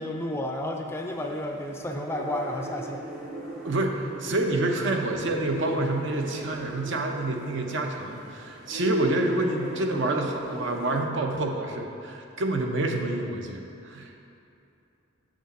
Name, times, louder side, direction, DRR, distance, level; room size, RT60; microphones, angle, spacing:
voice 1, 0.0-3.0, left 1 dB, 10° left, 2 dB, 0.4 m, -31 dB
sound 1, 1.1-11.0, right 2 dB, 40° right, 1.2 m, -39 dB
voice 2, 3.6-14.2, right 2 dB, 60° right, 3 dB, 0.7 m, -28 dB
7.2 x 6.3 x 4.1 m, 2.7 s
head